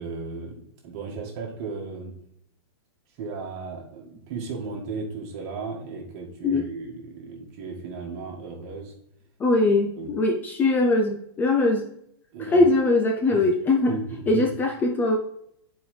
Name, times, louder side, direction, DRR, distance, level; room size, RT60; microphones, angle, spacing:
voice 1, 0.0-2.1 3.2-8.9 10.0-10.1 12.3-12.7 13.3-13.5 13.9-14.5, right 4 dB, 40° right, -1 dB, 1.7 m, -35 dB
voice 2, 9.4-11.9 12.5-14.0 14.3-15.2, left 2 dB, 15° left, 2 dB, 0.4 m, -21 dB
9.7 x 4.5 x 3.2 m, 0.74 s
hypercardioid pair, 155°, 14 cm